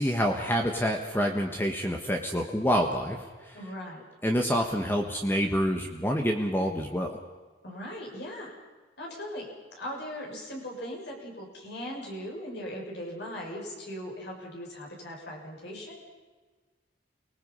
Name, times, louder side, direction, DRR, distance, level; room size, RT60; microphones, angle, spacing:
voice 1, 0.0-3.6 4.2-7.2, equal, 10° left, 3 dB, 1.4 m, -27 dB
voice 2, 3.5-4.0 7.6-8.6 9.0-16.2, equal, 60° left, -2 dB, 6.5 m, -39 dB
29.5 x 20.0 x 5.6 m, 1.4 s
head